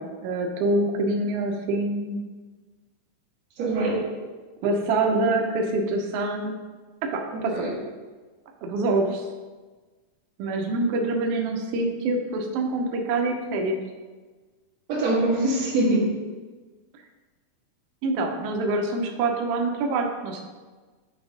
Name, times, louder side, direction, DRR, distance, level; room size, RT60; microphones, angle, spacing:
voice 1, 0.0-2.2 4.6-6.5 7.0-7.8 8.6-9.2 10.4-13.8 18.0-20.4, right 2 dB, 80° right, 2 dB, 1.4 m, -25 dB
voice 2, 3.6-4.0 7.3-7.8 14.9-16.1, right 1 dB, 60° right, -4 dB, 2.4 m, -23 dB
8.3 x 3.5 x 5.0 m, 1.3 s
omnidirectional pair, 3.6 m